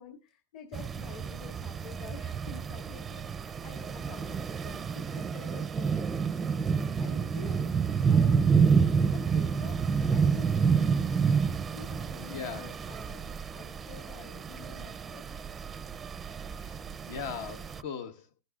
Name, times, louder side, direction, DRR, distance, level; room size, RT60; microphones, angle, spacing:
voice 1, 0.0-8.6 9.1-11.0 11.7-15.3, left 6 dB, 45° left, 2.3 m, -49 dB
sound 1, 0.7-17.8, right 6 dB, 15° right, 0.5 m, -29 dB
voice 2, 12.2-12.7 16.4-18.4, left 6 dB, 65° left, 1.2 m, -40 dB
21.5 x 11.0 x 2.4 m
supercardioid pair, 140°, 0 cm